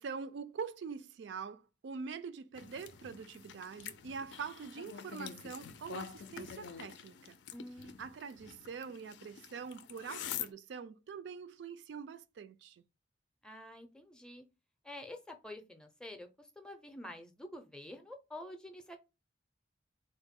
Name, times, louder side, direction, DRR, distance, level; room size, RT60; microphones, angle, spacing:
voice 1, 0.0-7.4 8.0-12.8, right 5 dB, 70° right, 0.3 m, -44 dB
sound 1, 2.5-10.5, left 8 dB, 75° left, 0.4 m, -46 dB
voice 2, 7.5-8.0 13.4-14.4 14.8-19.0, left 1 dB, 5° left, 0.5 m, -48 dB
3.8 x 2.1 x 3.6 m
head